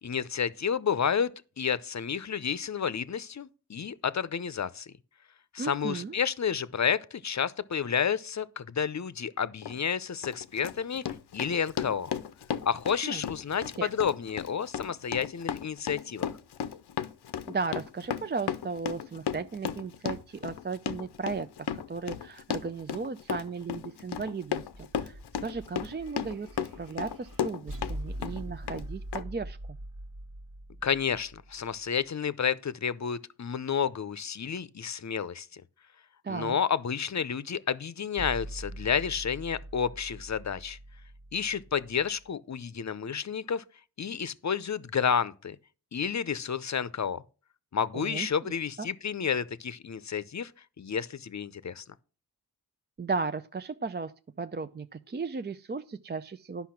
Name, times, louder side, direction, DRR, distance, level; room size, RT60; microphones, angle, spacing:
voice 1, 0.0-1.3 1.6-4.9 5.5-11.0 11.3-12.1 12.7-16.3 30.8-35.5 36.3-40.8 41.3-43.6 44.0-45.6 45.9-47.2 47.7-50.5 50.8-51.8, left 7 dB, 45° left, 0.7 m, -30 dB
voice 2, 5.6-6.1 13.0-13.2 13.8-13.9 17.5-29.8 36.2-36.6 47.9-48.3 48.8-48.9 53.0-54.1 54.4-56.7, right 4 dB, 25° right, 0.5 m, -35 dB
Run, 9.6-9.8 10.2-28.0 28.2-28.8 29.1-29.2, left 8 dB, 90° left, 0.7 m, -35 dB
sound 1, 24.6-31.9 38.2-42.3, right 1 dB, 55° right, 1.4 m, -43 dB
10.5 x 5.7 x 5.8 m
cardioid pair, 55°, 39 cm